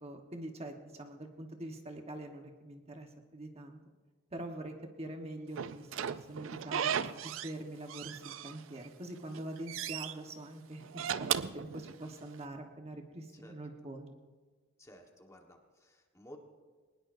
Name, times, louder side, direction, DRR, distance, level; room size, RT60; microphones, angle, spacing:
voice 1, 0.0-3.8 4.3-14.1, right 1 dB, 30° right, 4 dB, 1.2 m, -44 dB
Slam / Squeak, 5.6-7.6 7.9-8.9 9.2-10.1 10.8-12.3, right 8 dB, 75° right, 0.5 m, -36 dB
voice 2, 14.8-16.4, equal, 15° left, 2 dB, 1.4 m, -55 dB
22.0 x 19.5 x 2.6 m, 1.4 s
head